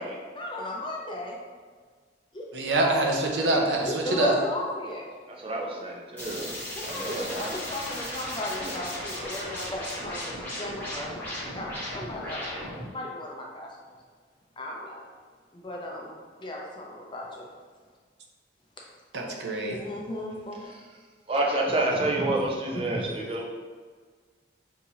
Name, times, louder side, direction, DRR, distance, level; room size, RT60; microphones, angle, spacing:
voice 1, 0.4-1.4 2.3-2.5 3.8-5.1 6.7-11.7 11.9-12.5 12.9-13.7 14.6-15.1 15.5-16.1 16.4-17.5 19.7-20.6 22.8-23.0, left 1 dB, 25° left, -2 dB, 0.6 m, -35 dB
voice 2, 2.5-4.3 19.1-19.8, right 2 dB, 75° right, 0 dB, 0.7 m, -25 dB
voice 3, 3.4-3.7 5.3-6.6 6.8-7.6 8.6-8.8 20.5-20.9 21.3-23.5, right 2 dB, 30° right, -2 dB, 0.6 m, -29 dB
sound 1, 6.2-12.9, left 1 dB, 10° left, 1.1 m, -36 dB
6.3 x 2.8 x 2.7 m, 1.5 s
head